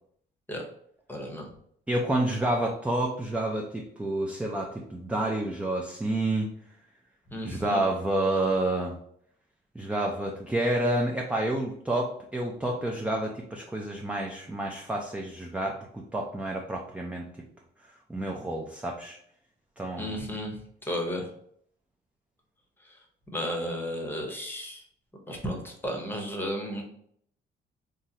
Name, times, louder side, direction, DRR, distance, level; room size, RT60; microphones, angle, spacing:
voice 1, 1.1-1.5 7.3-7.8 20.0-20.6 20.8-21.2 23.3-24.8 25.3-26.8, equal, 10° left, 1 dB, 0.8 m, -33 dB
voice 2, 1.9-6.5 7.4-8.9 9.8-17.3 18.1-19.2 19.8-20.1, right 1 dB, 5° right, 0 dB, 0.4 m, -29 dB
3.6 x 2.0 x 2.7 m, 0.67 s
cardioid pair, 90°, 20 cm